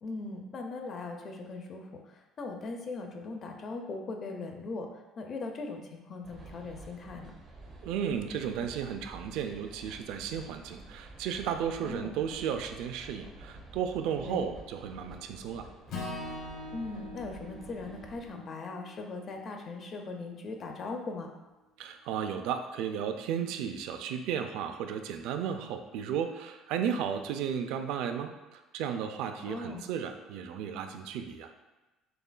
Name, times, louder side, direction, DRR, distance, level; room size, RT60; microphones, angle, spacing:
voice 1, 0.0-4.9 5.2-7.3 11.8-12.1 14.2-14.6 16.7-21.3 29.5-29.9, left 3 dB, 35° left, 3 dB, 0.5 m, -39 dB
sound 1, 6.2-18.3, right 2 dB, 30° right, 0.6 m, -50 dB
voice 2, 7.8-15.7 21.8-31.5, right 8 dB, 75° right, 6 dB, 0.3 m, -34 dB
Acoustic guitar / Strum, 15.9-20.2, left 2 dB, 60° left, 0.9 m, -43 dB
6.5 x 2.4 x 2.2 m, 1.1 s
cardioid pair, 140°, 0 cm